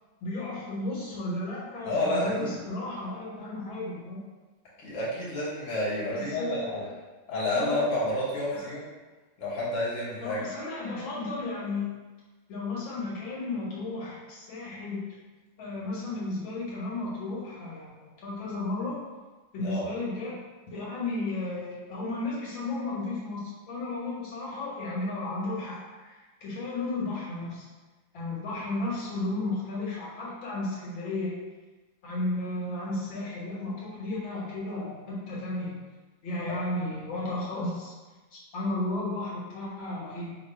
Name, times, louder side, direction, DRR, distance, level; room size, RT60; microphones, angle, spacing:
voice 1, 0.2-4.2 6.1-6.9 7.5-7.8 8.5-8.7 10.2-11.9 12.5-15.0 15.6-19.0 19.5-20.4 20.7-25.8 26.0-27.7 28.1-31.4 32.0-35.8 36.2-37.9 38.3-40.4, left 2 dB, 80° left, -6 dB, 1.8 m, -33 dB
voice 2, 1.8-2.6 4.8-6.8 7.3-8.9 9.4-10.6 19.6-19.9 36.5-36.6, left 1 dB, 45° left, -8 dB, 1.3 m, -30 dB
3.9 x 2.3 x 4.3 m, 1.2 s
omnidirectional pair, 2.1 m